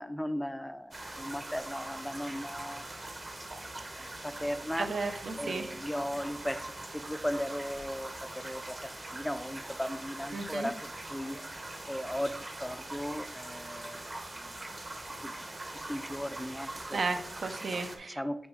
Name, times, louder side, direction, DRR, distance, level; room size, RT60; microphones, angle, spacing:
voice 1, 0.0-2.8 3.9-4.9 5.4-6.7 6.9-10.7 11.1-11.4 11.9-14.1 15.2-15.3 15.9-17.0 18.1-18.4, equal, 5° left, 10 dB, 0.3 m, -36 dB
sound 1, 0.9-18.0, right 2 dB, 40° right, 0.9 m, -42 dB
voice 2, 4.8-5.7 10.3-10.7 16.9-18.2, right 3 dB, 75° right, 7 dB, 0.6 m, -34 dB
6.2 x 5.2 x 3.7 m, 0.73 s
wide cardioid pair, 120°, 0 cm